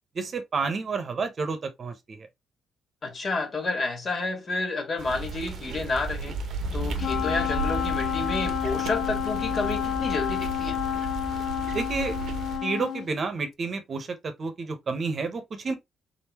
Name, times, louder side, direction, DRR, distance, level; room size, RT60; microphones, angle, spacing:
voice 1, 0.1-2.3 11.7-12.2 12.6-15.7, right 4 dB, 45° right, 1.0 m, -30 dB
voice 2, 3.0-6.4 6.7-10.8, left 3 dB, 40° left, 2.0 m, -30 dB
sound 1, 5.0-12.6, right 4 dB, 65° right, 0.8 m, -35 dB
sound 2, 6.6-12.5, equal, ahead, 0.7 m, -39 dB
Wind instrument woodwind instrument, 7.0-13.1, left 10 dB, 65° left, 0.4 m, -29 dB
3.9 x 3.7 x 3.0 m
cardioid pair, 90°, 0 cm